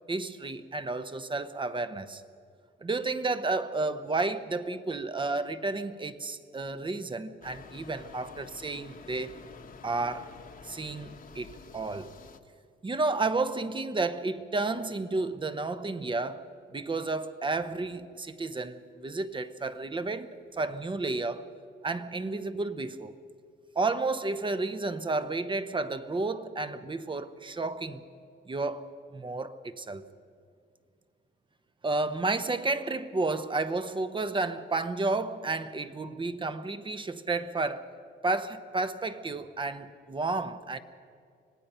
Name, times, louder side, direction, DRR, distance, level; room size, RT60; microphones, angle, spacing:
voice 1, 0.1-2.2 2.8-9.3 9.8-10.3 10.6-12.1 12.8-16.4 16.7-21.4 21.8-23.1 23.7-28.0 28.5-30.0 31.8-37.9 38.2-40.8, right 3 dB, 25° right, 0.9 m, -31 dB
sound 1, 7.4-12.4, left 5 dB, 45° left, 1.2 m, -49 dB
25.5 x 18.0 x 5.6 m
cardioid pair, 90°, 20 cm